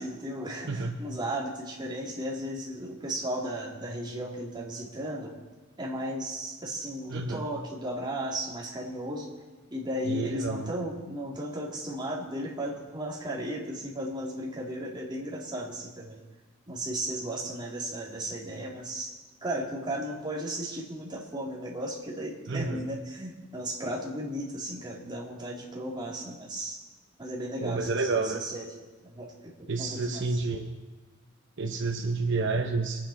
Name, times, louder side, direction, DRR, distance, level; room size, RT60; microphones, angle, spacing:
voice 1, 0.0-5.3 5.8-9.3 9.7-16.2 16.7-19.1 19.4-26.8 27.2-28.7 29.0-30.2, right 1 dB, 20° right, -4 dB, 3.0 m, -35 dB
voice 2, 0.7-1.0 7.1-7.4 10.0-10.7 22.5-22.9 27.6-28.4 29.7-30.7 31.6-33.1, right 3 dB, 60° right, 4 dB, 0.9 m, -30 dB
24.5 x 9.3 x 4.3 m, 1.2 s
head